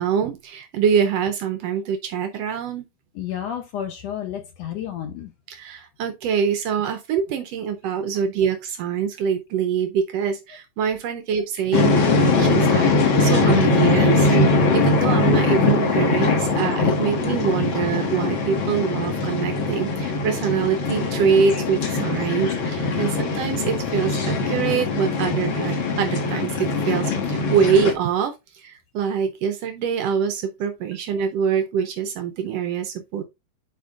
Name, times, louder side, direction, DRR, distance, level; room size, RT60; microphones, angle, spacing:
voice 1, 0.0-2.9 5.5-33.2, right 7 dB, 85° right, 1.4 m, -24 dB
voice 2, 3.1-5.3 17.6-17.7 21.5-21.6, left 10 dB, 75° left, 1.5 m, -31 dB
sound 1, 11.7-27.9, left 3 dB, 50° left, 1.6 m, -21 dB
10.5 x 4.4 x 2.4 m
omnidirectional pair, 3.7 m